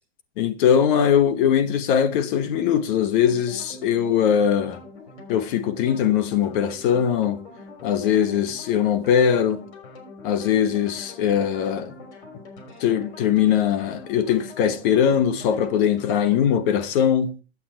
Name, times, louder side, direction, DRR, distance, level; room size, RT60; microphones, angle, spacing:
voice 1, 0.4-4.8 5.3-7.4 7.8-9.6 10.2-11.9 12.8-17.3, left 8 dB, 50° left, 1.2 m, -21 dB
sound 1, 3.2-16.6, left 2 dB, 90° left, 3.3 m, -43 dB
8.5 x 7.7 x 4.4 m
supercardioid pair, 140°, 32 cm